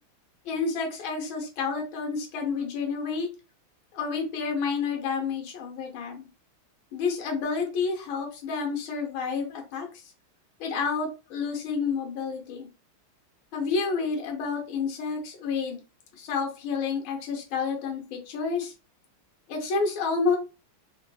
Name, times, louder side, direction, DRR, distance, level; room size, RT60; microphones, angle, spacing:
voice 1, 0.5-3.3 3.9-6.3 6.9-10.0 10.6-12.7 13.5-15.8 16.1-18.7 19.5-20.4, left 5 dB, 70° left, 1 dB, 1.7 m, -29 dB
3.8 x 2.5 x 2.2 m, 0.30 s
omnidirectional pair, 2.4 m